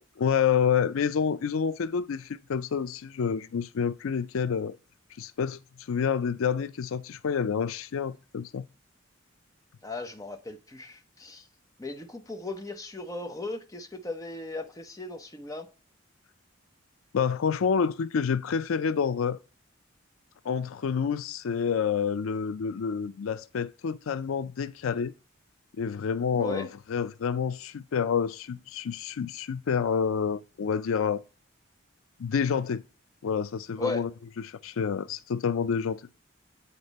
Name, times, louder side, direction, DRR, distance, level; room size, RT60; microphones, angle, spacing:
voice 1, 0.2-4.8 5.2-5.6 5.9-8.6 17.1-19.4 20.4-25.1 25.8-31.2 32.2-32.8 33.2-34.1 34.4-36.0, left 6 dB, 85° left, 0.4 m, -28 dB
voice 2, 9.8-11.5 11.8-15.7 26.3-26.7 33.8-34.1, left 2 dB, 15° left, 0.8 m, -37 dB
8.2 x 4.3 x 4.0 m
head